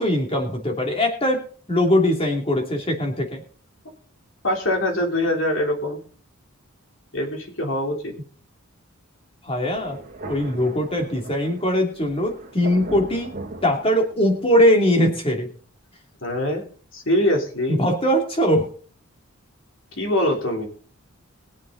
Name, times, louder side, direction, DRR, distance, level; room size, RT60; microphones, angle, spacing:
voice 1, 0.0-3.4 9.4-10.0 10.2-13.3 13.6-15.5 17.8-18.7, equal, 25° left, 2 dB, 2.8 m, -21 dB
voice 2, 4.4-6.0 7.1-8.1 16.2-16.7 16.9-17.8 19.9-20.7, left 1 dB, 60° left, 1 dB, 3.5 m, -23 dB
Thunder, 9.7-14.5, right 2 dB, 40° right, 2.3 m, -38 dB
22.0 x 7.4 x 4.0 m, 0.42 s
head